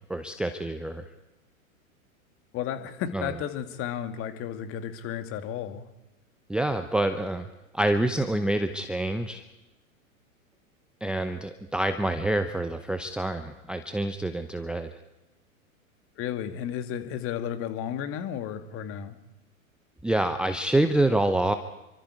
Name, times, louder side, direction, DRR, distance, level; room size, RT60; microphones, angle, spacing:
voice 1, 0.1-1.0 3.1-3.3 6.5-7.5 7.7-9.4 11.0-14.9 20.0-21.6, right 1 dB, ahead, 8 dB, 0.8 m, -27 dB
voice 2, 2.5-5.9 16.2-19.2, left 9 dB, 30° left, 8 dB, 2.2 m, -33 dB
28.0 x 24.5 x 4.9 m, 0.97 s
figure-of-eight pair, 100°, 42 cm